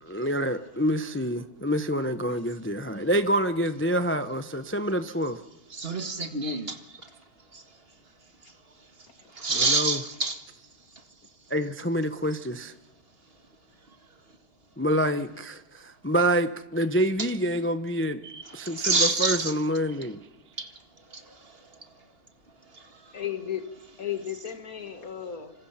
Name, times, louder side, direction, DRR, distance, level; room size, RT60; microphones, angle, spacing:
voice 1, 0.0-5.4 9.6-10.0 11.5-12.7 14.8-18.2 18.5-20.2, equal, 10° left, 0.7 m, -27 dB
voice 2, 5.7-6.8 9.4-10.4 17.2-17.3 18.2-19.5 20.6-20.7, right 3 dB, 30° right, 1.9 m, -27 dB
voice 3, 23.1-23.6 24.0-25.5, left 10 dB, 45° left, 2.4 m, -34 dB
26.5 x 26.5 x 5.9 m
omnidirectional pair, 2.1 m